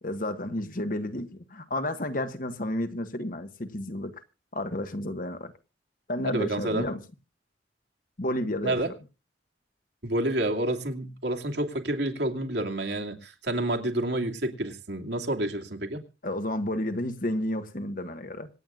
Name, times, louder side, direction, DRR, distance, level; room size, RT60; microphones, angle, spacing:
voice 1, 0.0-4.2 4.5-5.5 6.1-7.0 8.2-8.8 16.2-18.5, left 1 dB, 50° left, 1.5 m, -31 dB
voice 2, 6.2-6.9 8.6-8.9 10.0-16.0, right 1 dB, 75° right, 2.6 m, -29 dB
26.0 x 9.3 x 2.5 m
head